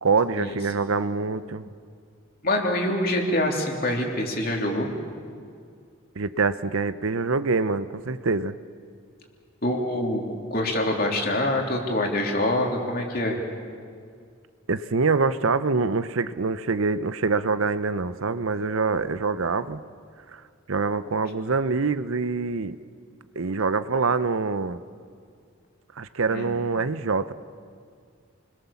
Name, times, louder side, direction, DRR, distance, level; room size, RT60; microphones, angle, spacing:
voice 1, 0.0-1.7 6.2-8.5 14.7-19.8 20.3-20.4 20.7-22.8 23.4-24.8 26.0-27.3, right 4 dB, 75° right, 13 dB, 0.8 m, -25 dB
voice 2, 2.4-4.9 9.6-13.4 26.3-26.6, left 1 dB, 45° left, 1 dB, 3.3 m, -25 dB
29.5 x 21.5 x 7.1 m, 2.2 s
head